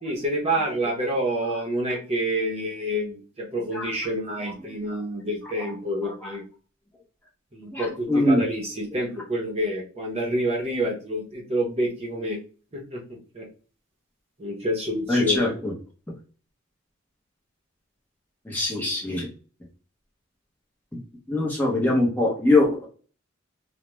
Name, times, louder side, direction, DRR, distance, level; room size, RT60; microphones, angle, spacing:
voice 1, 0.0-6.4 7.5-12.4 12.7-13.5 14.4-15.6, right 1 dB, 30° right, -1 dB, 0.7 m, -28 dB
voice 2, 7.7-8.4 15.1-15.7 18.5-19.3 21.3-22.9, left 2 dB, 10° left, -2 dB, 0.6 m, -22 dB
2.3 x 2.1 x 3.0 m, 0.36 s
head